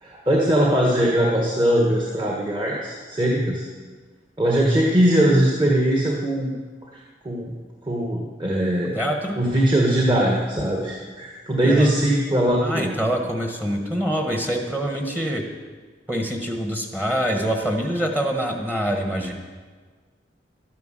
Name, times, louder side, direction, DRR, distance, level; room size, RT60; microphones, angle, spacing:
voice 1, 0.0-3.7 4.4-6.5 6.9-7.5 7.9-9.0 9.4-12.9, right 1 dB, 25° right, -2 dB, 1.6 m, -21 dB
voice 2, 8.9-9.4 11.6-11.9 12.6-15.5 16.1-19.3, equal, 10° right, 2 dB, 1.3 m, -25 dB
12.0 x 10.5 x 7.6 m, 1.5 s
head